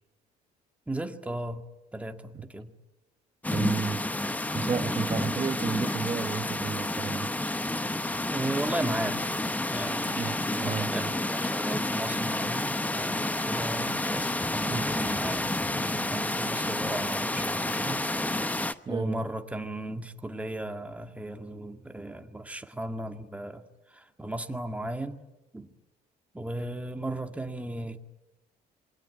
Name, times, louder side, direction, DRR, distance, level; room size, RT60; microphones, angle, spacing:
voice 1, 0.9-1.6 1.9-2.7 8.3-9.4 9.7-25.2 25.5-25.7 26.3-28.0, right 1 dB, 10° right, 2.1 m, -36 dB
sound 1, 3.4-18.7, left 2 dB, 10° left, 1.0 m, -30 dB
voice 2, 3.5-7.3 10.2-11.1 14.7-14.9 18.9-19.3, right 6 dB, 30° right, 1.2 m, -33 dB
27.5 x 22.5 x 9.5 m
cardioid pair, 110°, 17 cm